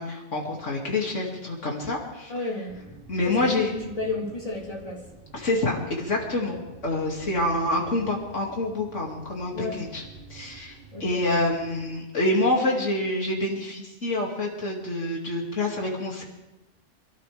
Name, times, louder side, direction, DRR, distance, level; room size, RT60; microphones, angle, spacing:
voice 1, 0.0-2.3 3.1-3.7 5.3-10.0 10.3-16.2, left 2 dB, 85° left, -1 dB, 2.8 m, -27 dB
voice 2, 2.3-3.0 3.3-5.1 6.5-6.6 9.5-9.9 10.9-11.2, left 2 dB, 30° left, -3 dB, 3.6 m, -33 dB
sound 1, 2.7-11.8, right 4 dB, 65° right, 4.1 m, -48 dB
27.0 x 14.0 x 3.4 m, 1.0 s
omnidirectional pair, 1.2 m